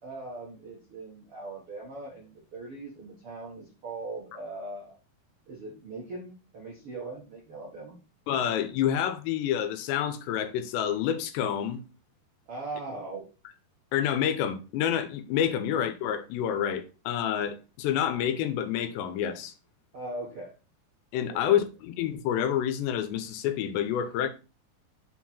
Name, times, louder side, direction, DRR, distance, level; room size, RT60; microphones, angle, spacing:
voice 1, 0.0-4.9 5.5-8.0 12.5-13.2 19.9-20.5 21.3-21.6, right 2 dB, 65° right, 1.4 m, -40 dB
voice 2, 8.3-11.8 13.9-19.5 21.1-24.3, left 9 dB, 85° left, 2.9 m, -28 dB
6.4 x 4.6 x 4.2 m
omnidirectional pair, 4.9 m